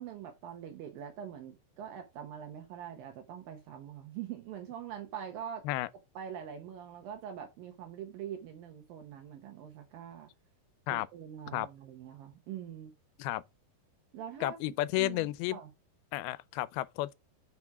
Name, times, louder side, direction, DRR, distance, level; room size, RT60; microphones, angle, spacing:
voice 1, 0.0-5.7 6.2-10.3 10.9-12.9 14.1-14.6 15.0-15.7, right 9 dB, 70° right, 2.6 m, -44 dB
voice 2, 14.4-15.6 16.1-17.2, left 17 dB, 85° left, 2.5 m, -32 dB
6.0 x 5.9 x 4.7 m
omnidirectional pair, 4.5 m